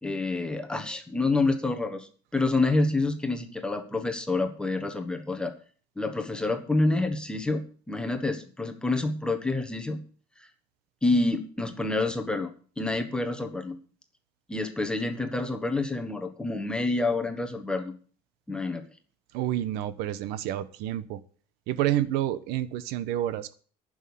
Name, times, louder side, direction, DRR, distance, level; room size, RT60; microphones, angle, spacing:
voice 1, 0.0-5.5 6.0-10.0 10.4-10.5 11.0-13.8 14.5-17.9 18.5-18.9, left 2 dB, 5° left, 6 dB, 1.2 m, -28 dB
voice 2, 19.3-21.2 21.7-23.5, right 12 dB, 70° right, 14 dB, 1.0 m, -29 dB
11.0 x 6.4 x 8.7 m, 0.42 s
cardioid pair, 175°, 17 cm